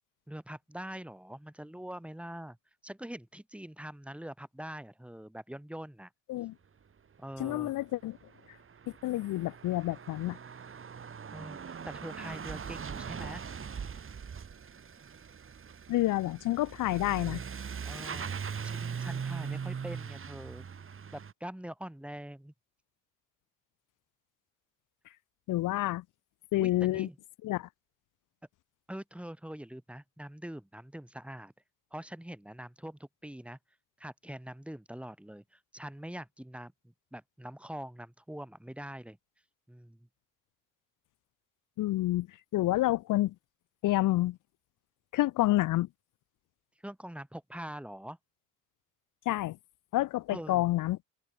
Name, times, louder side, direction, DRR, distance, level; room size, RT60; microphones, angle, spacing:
voice 1, 0.3-2.6 2.8-6.1 7.2-7.7 11.3-13.4 17.8-18.3 18.6-20.7 21.1-22.5 26.6-27.2 28.9-31.5 31.9-33.6 34.0-39.2 39.7-40.1 46.8-48.2 50.3-50.7, right 1 dB, 5° right, 3.9 m, -44 dB
voice 2, 7.4-8.2 9.0-10.4 15.9-17.4 25.5-26.0 26.5-27.1 27.4-27.7 41.8-42.3 42.5-43.3 43.8-44.4 45.1-45.9 49.3-49.6 49.9-51.0, left 16 dB, 75° left, 1.1 m, -28 dB
Truck / Accelerating revving vroom, 7.6-7.7 7.9-21.3, right 6 dB, 40° right, 7.9 m, -41 dB
cardioid pair, 95°, 32 cm